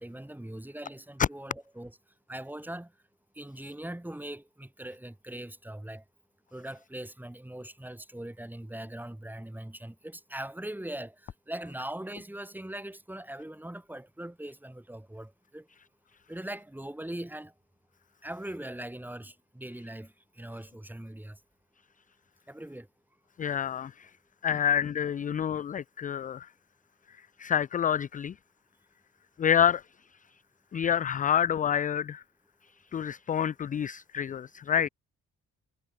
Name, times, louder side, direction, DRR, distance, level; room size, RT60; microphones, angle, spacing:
voice 1, 0.0-2.0 2.3-2.9 3.3-6.0 6.5-15.7 16.3-17.5 18.2-21.4 22.5-22.9 24.5-24.6, right 1 dB, 5° right, 3.3 m, -41 dB
voice 2, 23.4-24.1 24.4-26.5 27.4-28.3 29.4-29.8 30.7-32.2 32.9-34.9, left 9 dB, 30° left, 0.3 m, -28 dB
cardioid pair, 90°, 30 cm